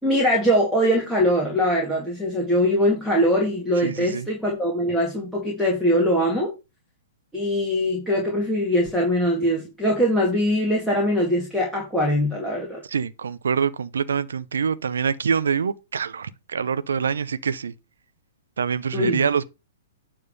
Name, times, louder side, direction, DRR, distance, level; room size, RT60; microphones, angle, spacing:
voice 1, 0.0-6.5 7.3-12.8 18.9-19.2, equal, ahead, 2.4 m, -22 dB
voice 2, 3.8-4.3 12.9-17.7 18.6-19.4, right 6 dB, 70° right, 0.7 m, -25 dB
9.3 x 3.7 x 6.8 m
figure-of-eight pair, 110°, 0 cm